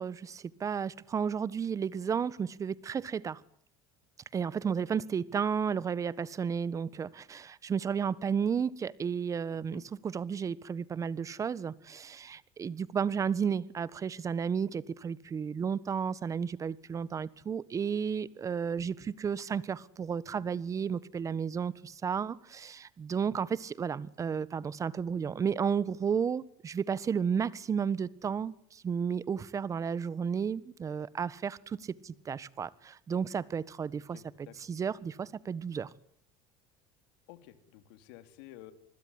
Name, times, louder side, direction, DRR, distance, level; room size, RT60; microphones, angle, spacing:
voice 1, 0.0-3.4 4.3-35.9, right 7 dB, 30° right, 19 dB, 1.4 m, -33 dB
voice 2, 9.5-9.8 20.3-20.6 33.9-34.5 37.3-38.7, left 14 dB, 80° left, 11 dB, 3.1 m, -52 dB
27.0 x 21.0 x 9.8 m, 0.65 s
supercardioid pair, 115°, 11 cm